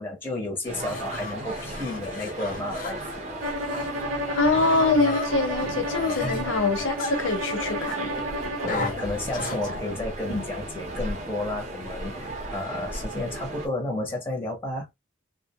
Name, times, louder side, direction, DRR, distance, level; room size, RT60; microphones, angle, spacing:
voice 1, 0.0-3.3 6.2-6.5 8.6-14.9, left 2 dB, 10° left, 0.7 m, -32 dB
sound 1, 0.7-3.9 4.3-6.4 7.0-8.0 8.7-9.7, left 4 dB, 45° left, 0.4 m, -36 dB
sound 2, 0.7-13.7, right 1 dB, 35° right, 0.7 m, -35 dB
Bowed string instrument, 3.4-9.0, equal, 85° right, 0.7 m, -32 dB
voice 2, 4.4-8.1 9.5-9.6 9.9-10.0 10.3-10.4, left 3 dB, 70° left, 0.7 m, -24 dB
2.3 x 2.1 x 2.8 m
head